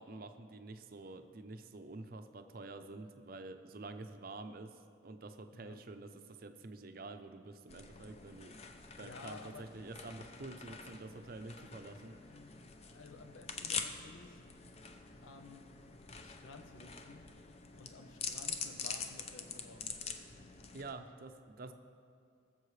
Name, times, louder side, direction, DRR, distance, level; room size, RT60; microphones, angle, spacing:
voice 1, 0.0-8.6 9.0-12.1 20.7-21.7, right 2 dB, 45° right, 8 dB, 0.5 m, -48 dB
voice 2, 5.5-5.8 9.0-9.7 12.2-14.4 15.2-15.7 16.2-17.3 17.8-19.9, left 3 dB, 85° left, 6 dB, 0.8 m, -54 dB
sound 1, 7.7-20.9, left 5 dB, 30° left, 0.5 m, -45 dB
19.5 x 7.2 x 3.2 m, 2.4 s
head